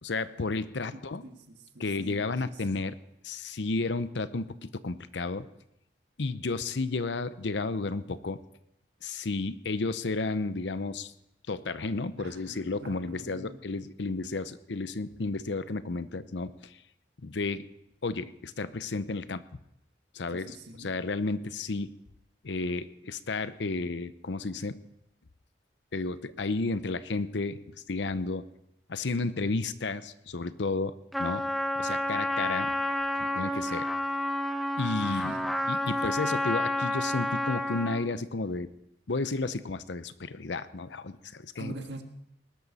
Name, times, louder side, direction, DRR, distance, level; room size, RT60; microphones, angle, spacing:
voice 1, 0.0-1.2 1.8-2.9 3.2-5.5 6.2-8.4 9.0-11.1 11.5-16.8 17.2-17.6 18.0-19.4 20.1-21.9 22.4-24.8 25.9-27.6 27.9-28.5 28.9-31.4 31.8-32.7 33.2-33.9 34.8-35.3 35.7-38.7 39.1-41.7, left 3 dB, 80° left, 14 dB, 0.7 m, -32 dB
voice 2, 0.9-2.9 12.1-13.6 20.3-20.9 35.0-35.5 36.0-36.1 41.6-42.0, right 2 dB, 75° right, 5 dB, 1.6 m, -45 dB
Trumpet, 31.1-38.1, left 1 dB, ahead, 0.8 m, -30 dB
19.5 x 12.0 x 4.2 m, 0.80 s
head